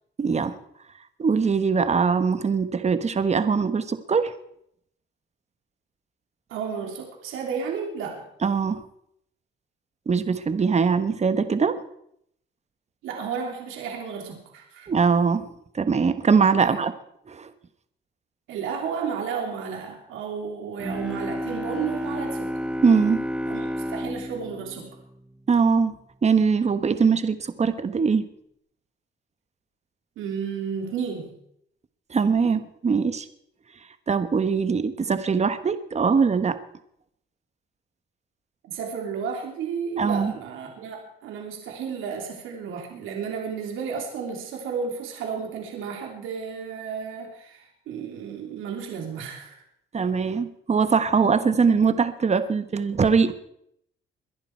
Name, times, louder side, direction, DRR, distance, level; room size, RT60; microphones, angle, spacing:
voice 1, 0.2-0.5 1.2-4.3 8.4-8.8 10.1-11.8 14.9-15.5 15.7-16.9 17.3-17.5 22.8-23.2 25.5-25.9 26.2-28.2 32.1-33.3 34.1-36.6 40.0-40.3 49.9-53.3, right 5 dB, 35° right, 11 dB, 1.3 m, -22 dB
voice 2, 6.5-8.2 13.0-14.9 16.6-16.9 18.5-22.5 23.5-24.9 30.2-31.3 38.6-49.6, right 6 dB, 90° right, 2 dB, 3.0 m, -32 dB
Bowed string instrument, 20.8-25.9, equal, 5° right, 1.8 m, -31 dB
22.0 x 11.0 x 4.6 m, 0.73 s
cardioid pair, 90°, 20 cm